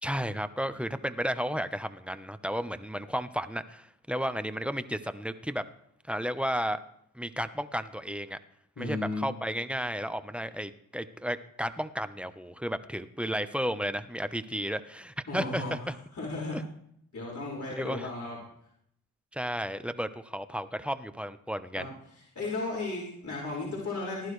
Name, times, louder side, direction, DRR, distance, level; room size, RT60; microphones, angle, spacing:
voice 1, 0.0-5.6 6.1-6.8 7.1-8.4 8.8-15.9 16.5-16.6 17.7-18.1 19.3-21.9, equal, 5° right, 11 dB, 1.0 m, -33 dB
voice 2, 8.8-9.3 15.3-15.7 16.1-16.6 17.1-18.4 21.8-21.9 22.4-24.3, left 2 dB, 50° left, -4 dB, 5.5 m, -34 dB
20.0 x 11.0 x 3.3 m, 0.70 s
cardioid pair, 55°, 36 cm